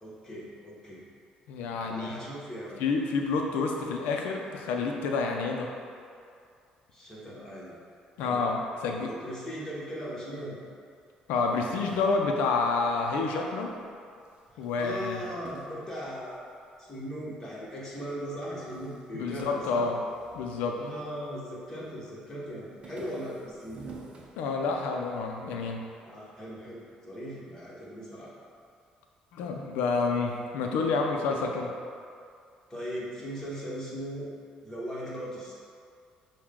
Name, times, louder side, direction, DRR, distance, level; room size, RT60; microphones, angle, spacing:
voice 1, 0.0-1.0 1.8-2.8 6.9-7.7 8.2-8.5 9.0-10.6 14.8-16.5 16.8-19.9 20.8-23.9 26.0-28.3 32.7-34.3 34.6-35.5, equal, 15° left, -7 dB, 1.4 m, -39 dB
voice 2, 1.5-2.1 2.8-5.7 8.2-9.1 11.3-13.7 14.6-15.2 19.1-20.0 20.3-20.8 24.4-25.8 29.3-31.7, left 4 dB, 85° left, 2 dB, 0.5 m, -29 dB
sound 1, 11.3-13.9 14.2-16.7 17.3-18.0 18.3-18.4 18.7-21.3 21.6-22.1 22.4-25.0, right 3 dB, 40° right, 0.7 m, -50 dB
6.1 x 2.3 x 3.7 m, 2.4 s
cardioid pair, 100°, 3 cm